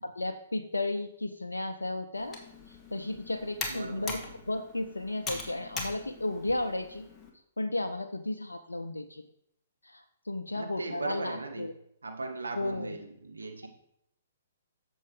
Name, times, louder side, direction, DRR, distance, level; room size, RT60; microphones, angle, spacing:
voice 1, 0.0-2.4 2.7-4.2 4.5-7.1 7.6-9.2 9.8-11.7 12.5-13.0, left 2 dB, 90° left, 6 dB, 0.5 m, -34 dB
Computer keyboard, 2.1-7.3, left 3 dB, 15° left, 1.7 m, -41 dB
voice 2, 3.7-4.4 10.5-11.7 12.0-13.7, right 3 dB, 85° right, 3 dB, 1.5 m, -38 dB
7.4 x 7.0 x 4.7 m, 0.75 s
figure-of-eight pair, 125°, 0 cm